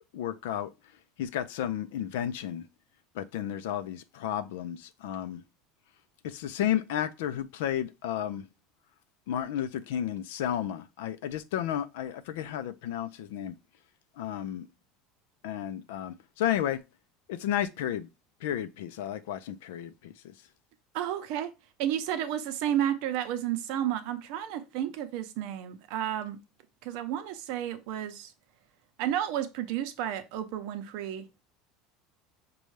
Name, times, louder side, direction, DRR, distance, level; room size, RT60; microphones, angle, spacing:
voice 1, 0.1-0.7 1.2-2.7 3.1-5.4 6.2-8.4 9.3-13.5 14.2-14.7 15.4-16.8 17.3-18.1 18.4-20.3, left 10 dB, 85° left, 0.5 m, -32 dB
voice 2, 20.9-21.5 21.8-26.4 26.8-28.3 29.0-31.3, right 11 dB, 65° right, 0.6 m, -32 dB
5.3 x 2.3 x 3.1 m
supercardioid pair, 145°, 0 cm